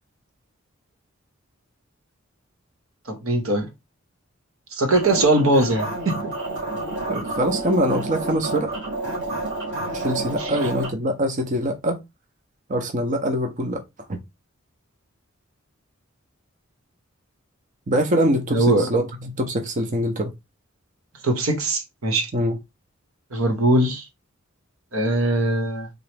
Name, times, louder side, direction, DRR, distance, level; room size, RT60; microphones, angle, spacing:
voice 1, 3.1-3.7 4.7-6.3 10.4-10.5 18.5-18.9 21.2-22.3 23.3-24.0 24.9-25.9, right 2 dB, 85° right, 1.0 m, -21 dB
sound 1, 4.9-10.9, right 2 dB, 60° right, 2.0 m, -29 dB
voice 2, 7.1-8.7 9.9-12.0 12.7-13.8 14.1-14.2 17.9-20.3 22.3-22.6, equal, 40° right, 0.6 m, -23 dB
3.8 x 2.9 x 3.3 m
head